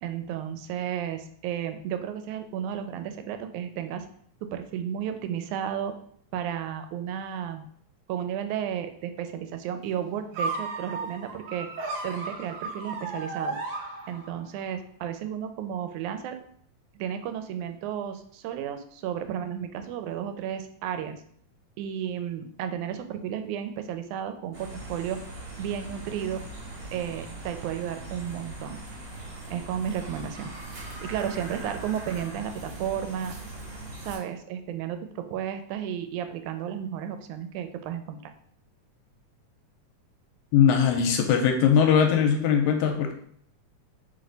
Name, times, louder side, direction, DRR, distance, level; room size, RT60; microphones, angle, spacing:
voice 1, 0.0-4.1 4.4-5.9 6.3-7.7 8.1-11.7 12.0-13.6 14.1-16.4 17.0-21.2 21.8-25.2 25.6-26.4 26.9-28.8 29.5-30.5 30.8-33.4 34.0-38.3, right 9 dB, 90° right, 8 dB, 2.0 m, -33 dB
sound 1, 10.3-14.5, right 3 dB, 65° right, 1.4 m, -34 dB
sound 2, 24.5-34.2, right 2 dB, 45° right, 1.8 m, -40 dB
voice 2, 40.5-43.1, left 7 dB, 80° left, 3 dB, 1.8 m, -20 dB
4.2 x 3.3 x 3.9 m, 0.63 s
omnidirectional pair, 3.4 m